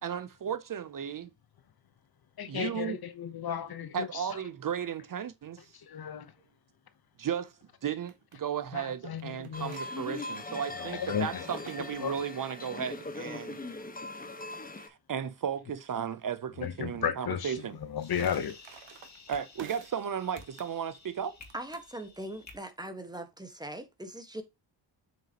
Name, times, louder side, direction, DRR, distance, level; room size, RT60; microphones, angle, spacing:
voice 1, 0.0-1.3 2.5-3.0 3.9-5.7 7.2-7.5 7.8-13.6 14.7-17.8 19.3-21.3, right 8 dB, 45° right, 0.7 m, -35 dB
voice 2, 2.4-4.3 5.7-6.3 8.7-9.7 10.8-11.6 12.0-12.2 16.6-18.6, left 8 dB, 55° left, 1.0 m, -34 dB
sound 1, 7.8-8.4 9.2-12.5 17.6-20.1 20.4-20.8 21.5-21.9, right 8 dB, 75° right, 1.6 m, -53 dB
sound 2, 9.5-14.9, left 2 dB, 20° left, 1.2 m, -40 dB
sound 3, 17.5-22.5, left 4 dB, 35° left, 2.4 m, -53 dB
voice 3, 21.5-24.4, right 1 dB, 10° right, 1.5 m, -41 dB
7.6 x 5.9 x 3.0 m
wide cardioid pair, 125°, 45 cm